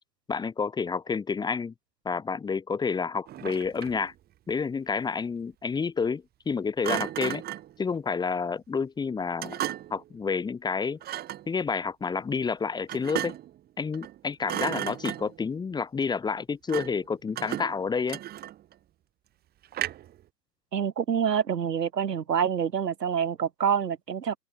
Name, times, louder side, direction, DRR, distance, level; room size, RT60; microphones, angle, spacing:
voice 1, 0.3-1.7 2.1-4.1 4.5-7.4 7.8-9.6 9.9-11.0 11.5-13.3 13.8-18.2, left 5 dB, 10° left, 3.5 m, -29 dB
Thump thud, 3.3-4.1 6.8-7.7 9.4-10.0 11.0-11.5 12.9-13.6 13.9-14.2 14.4-15.5 16.7-17.0 17.4-18.7 19.7-20.2, right 13 dB, 20° right, 5.1 m, -34 dB
voice 2, 20.7-24.4, right 8 dB, 75° right, 6.6 m, -27 dB
open air
hypercardioid pair, 145°, 49 cm